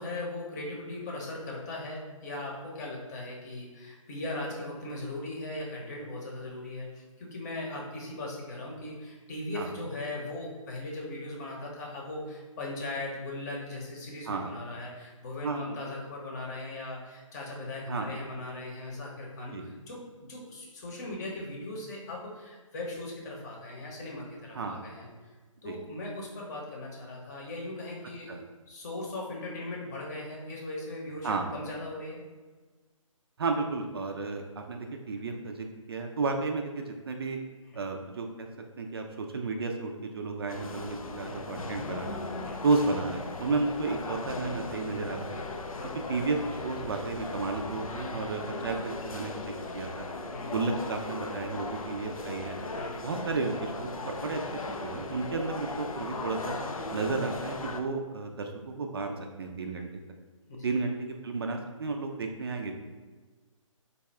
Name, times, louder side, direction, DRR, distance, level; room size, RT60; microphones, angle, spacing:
voice 1, 0.0-20.0 20.3-25.3 25.6-28.4 28.7-32.2 37.7-37.9 42.4-42.6 45.7-46.0 50.3-50.6 52.7-53.1 56.9-57.1 60.5-60.8, left 2 dB, 30° left, -2 dB, 0.8 m, -39 dB
voice 2, 15.4-15.8 17.9-18.1 19.5-19.6 24.5-24.8 25.6-25.8 28.3-28.4 31.2-31.5 33.4-37.4 37.7-38.5 38.8-42.2 42.6-45.4 46.1-50.1 50.5-52.6 53.0-56.5 56.9-59.9 60.6-62.7, right 3 dB, 45° right, 4 dB, 0.4 m, -32 dB
sound 1, 40.5-57.8, left 3 dB, 85° left, 0.4 m, -38 dB
4.0 x 2.2 x 3.3 m, 1.3 s
figure-of-eight pair, 140°, 17 cm